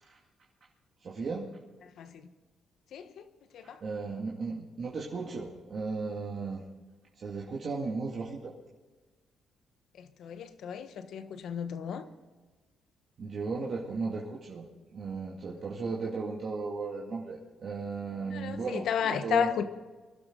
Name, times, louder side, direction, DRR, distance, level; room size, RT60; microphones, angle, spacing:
voice 1, 1.0-1.5 3.8-6.6 7.2-8.5 13.2-14.6 14.9-19.5, right 4 dB, 50° right, 2.2 m, -35 dB
voice 2, 10.2-10.9 11.1-12.0 18.3-18.6 18.9-19.7, left 8 dB, 70° left, 1.2 m, -31 dB
23.5 x 12.0 x 3.9 m
cardioid pair, 90°, 0 cm